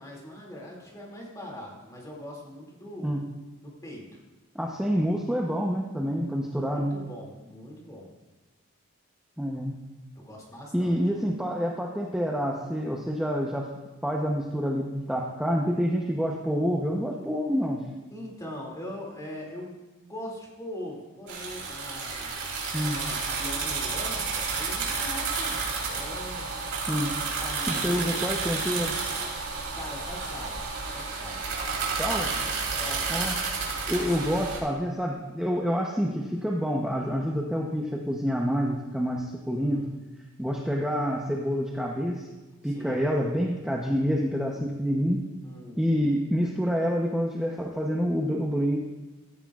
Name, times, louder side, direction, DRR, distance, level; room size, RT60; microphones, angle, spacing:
voice 1, 0.0-3.2 3.6-4.2 6.1-8.1 10.2-11.0 18.1-22.4 22.8-25.6 25.9-26.5 27.1-28.3 29.7-30.6 30.8-31.4 32.7-33.3 34.0-34.1 39.6-39.9 42.6-43.0 45.4-45.8, left 1 dB, 15° left, -2 dB, 2.5 m, -41 dB
voice 2, 4.5-6.9 9.4-9.8 10.7-13.7 14.0-17.9 22.7-23.0 26.9-27.1 27.7-28.9 32.0-32.3 33.1-33.4 33.9-39.9 40.4-42.3 42.6-45.2 45.8-48.8, equal, 5° right, -2 dB, 0.8 m, -27 dB
sound 1, 21.3-34.6, right 4 dB, 70° right, 3.0 m, -31 dB
15.5 x 13.0 x 2.4 m, 1.2 s
head